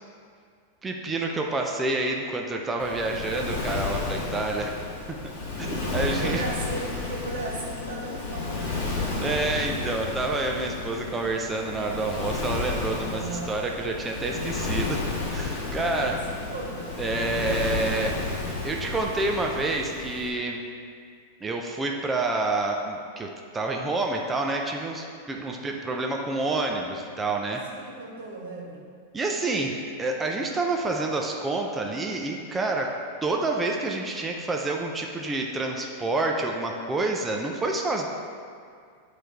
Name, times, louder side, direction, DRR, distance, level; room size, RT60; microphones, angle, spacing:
voice 1, 0.8-4.7 5.1-5.2 5.9-6.4 9.2-15.0 15.3-16.2 17.0-18.2 18.6-20.6 21.4-27.6 29.1-38.1, right 2 dB, 10° right, 1 dB, 0.4 m, -28 dB
Waves surf, 2.8-20.3, left 3 dB, 35° left, 1.7 m, -32 dB
voice 2, 5.5-9.0 13.1-13.6 15.7-16.9 25.5-25.8 27.7-28.8, right 3 dB, 90° right, -2 dB, 1.7 m, -37 dB
Buzz, 6.1-14.2, left 5 dB, 80° left, 1.1 m, -43 dB
9.1 x 3.2 x 4.4 m, 2.2 s
supercardioid pair, 165°, 0 cm